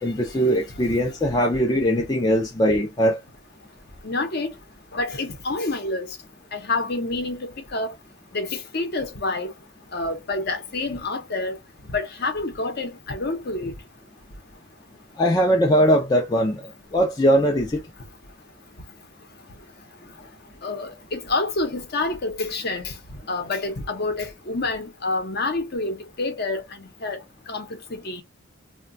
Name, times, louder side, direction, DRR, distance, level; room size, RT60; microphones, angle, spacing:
voice 1, 0.0-3.2 15.2-16.7 16.9-17.9, equal, 20° left, 0.4 m, -20 dB
voice 2, 4.0-4.5 4.9-6.1 6.5-7.9 8.3-9.5 9.9-11.6 11.9-13.7 20.6-22.9 23.3-27.2 27.5-28.2, left 2 dB, 50° left, 0.8 m, -28 dB
2.3 x 2.2 x 3.8 m
head